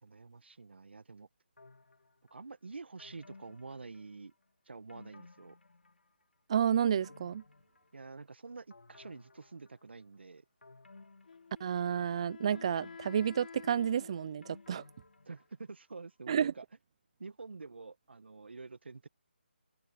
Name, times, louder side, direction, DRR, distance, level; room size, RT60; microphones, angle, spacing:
voice 1, 0.0-1.3 2.3-4.3 4.6-5.6 7.9-10.4 15.2-16.6 17.2-19.1, right 4 dB, 75° right, 1.5 m, -48 dB
sound 1, 1.6-2.4 3.0-4.4 4.9-6.2 6.6-8.2 8.7-10.0 10.6-12.1 12.5-15.8 16.1-16.2, left 3 dB, 85° left, 3.3 m, -58 dB
voice 2, 6.5-7.4 11.6-14.8 16.3-16.5, right 8 dB, 30° right, 0.4 m, -30 dB
Wind instrument woodwind instrument, 11.3-14.9, left 5 dB, 55° left, 5.1 m, -51 dB
figure-of-eight pair, 165°, 6 cm